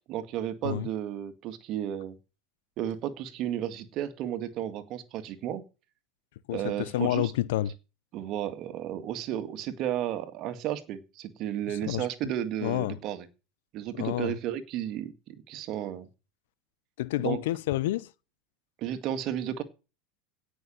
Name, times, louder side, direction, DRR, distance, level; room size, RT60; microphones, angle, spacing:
voice 1, 0.1-2.2 2.8-5.6 6.5-7.3 8.1-13.3 13.7-16.1 17.2-17.4 18.8-19.6, right 11 dB, 50° right, 2.1 m, -33 dB
voice 2, 6.5-7.7 11.8-12.1 12.6-13.0 14.0-14.3 17.0-18.1, left 15 dB, 70° left, 0.7 m, -29 dB
17.0 x 6.5 x 6.5 m
hypercardioid pair, 85°, 0 cm